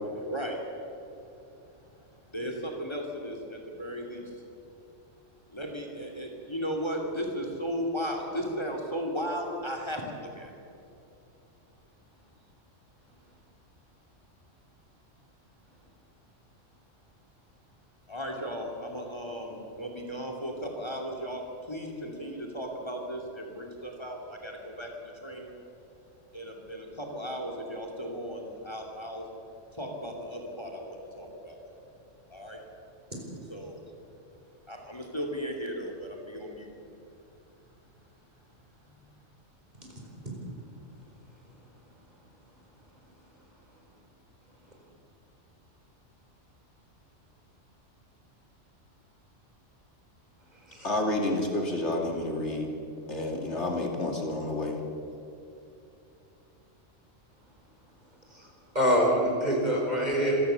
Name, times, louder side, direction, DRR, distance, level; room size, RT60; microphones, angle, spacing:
voice 1, 0.2-0.6 2.3-4.2 5.5-10.5 18.1-21.4 21.7-25.6 26.3-29.2 29.8-31.6 32.3-32.6 33.5-33.8 34.7-36.7, equal, 20° left, 2 dB, 2.7 m, -36 dB
voice 2, 50.8-52.7 53.1-54.8, left 2 dB, 65° left, 1 dB, 2.9 m, -29 dB
voice 3, 58.7-60.4, equal, 35° right, -1 dB, 4.8 m, -25 dB
26.5 x 16.0 x 7.0 m, 2.8 s
omnidirectional pair, 1.3 m